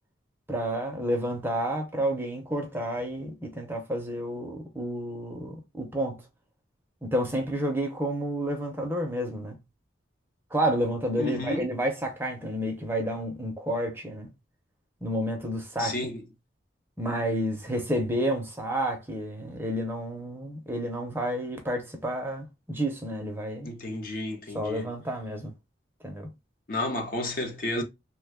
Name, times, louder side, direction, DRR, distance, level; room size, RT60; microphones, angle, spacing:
voice 1, 0.5-6.3 7.0-9.6 10.5-14.3 15.0-15.9 17.0-23.7 24.5-25.5 26.0-26.3, equal, 10° right, 0.6 m, -30 dB
voice 2, 11.2-11.7 15.8-16.2 23.6-24.9 26.7-27.8, left 2 dB, 45° left, 0.7 m, -31 dB
3.1 x 2.2 x 3.4 m
head